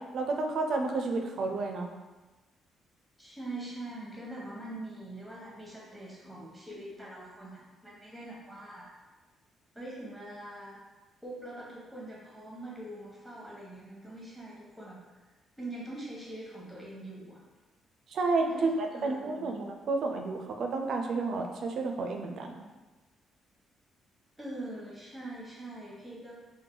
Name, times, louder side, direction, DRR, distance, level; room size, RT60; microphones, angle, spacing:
voice 1, 0.0-1.9 18.1-22.6, right 3 dB, 65° right, 3 dB, 0.4 m, -31 dB
voice 2, 3.2-8.9 9.7-10.8 11.2-15.2 15.6-17.4 18.5-19.6 24.4-26.3, right 1 dB, 5° right, -5 dB, 1.0 m, -43 dB
2.8 x 2.2 x 3.7 m, 1.2 s
cardioid pair, 90°, 0 cm